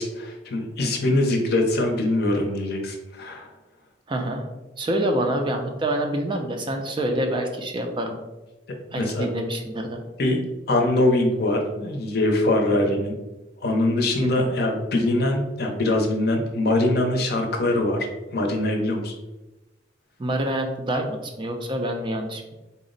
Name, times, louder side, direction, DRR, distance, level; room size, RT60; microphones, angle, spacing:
voice 1, 0.0-3.5 8.9-9.3 10.2-10.4 10.7-13.1 13.6-18.1 18.3-19.1, left 1 dB, 55° left, 3 dB, 0.6 m, -23 dB
voice 2, 4.1-4.4 4.8-8.2 8.9-10.0 14.2-14.5 20.2-22.5, right 1 dB, 25° right, 3 dB, 0.3 m, -26 dB
4.1 x 2.0 x 3.8 m, 1.1 s
head